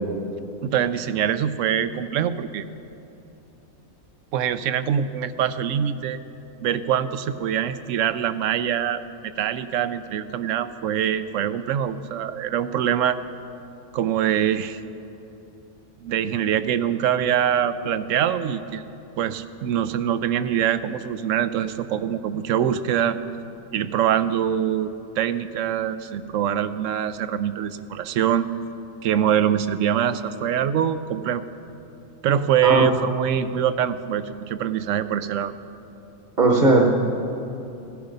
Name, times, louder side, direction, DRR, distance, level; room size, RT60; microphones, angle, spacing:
voice 1, 0.6-2.6 4.3-6.2 6.6-13.2 13.9-14.8 16.0-18.9 19.2-23.2 23.7-28.5 29.0-31.4 32.2-35.5, right 9 dB, 70° right, 13 dB, 0.9 m, -24 dB
voice 2, 36.4-36.9, right 2 dB, 40° right, 0 dB, 1.2 m, -16 dB
17.0 x 9.7 x 5.3 m, 2.9 s
omnidirectional pair, 1.4 m